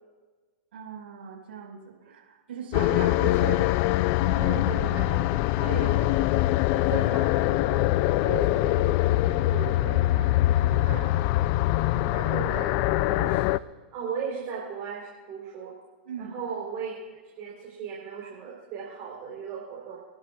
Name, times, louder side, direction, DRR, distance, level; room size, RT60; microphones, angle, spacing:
voice 1, 0.7-3.3 4.2-4.5 6.9-7.1 9.3-9.4 9.8-11.0 11.3-11.6 11.9-12.1 16.0-16.3, right 6 dB, 70° right, -1 dB, 5.3 m, -41 dB
sound 1, 2.7-13.6, left 16 dB, 45° left, 0.4 m, -23 dB
voice 2, 3.1-3.6 4.4-5.2 5.5-6.3 6.7-8.9 9.2-10.0 10.8-11.1 12.1-13.5 13.9-15.8 16.2-17.0 17.2-20.0, right 6 dB, 40° right, -4 dB, 3.9 m, -37 dB
29.5 x 11.0 x 2.4 m, 1.3 s
hypercardioid pair, 115°, 6 cm